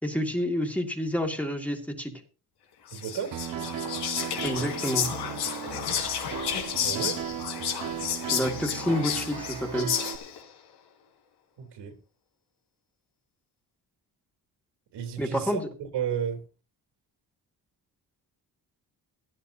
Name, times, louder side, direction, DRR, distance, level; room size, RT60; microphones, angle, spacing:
voice 1, 0.0-2.1 4.4-5.1 8.3-9.9 15.2-15.7, equal, 5° left, 2.2 m, -29 dB
Whispering, 2.9-10.4, left 8 dB, 85° left, 3.6 m, -32 dB
voice 2, 2.9-3.4 6.8-7.3 11.6-12.0 14.9-16.4, right 8 dB, 90° right, 3.5 m, -33 dB
Piano, 3.3-10.2, right 9 dB, 55° right, 1.5 m, -36 dB
16.0 x 13.0 x 2.8 m
cardioid pair, 150°, 40 cm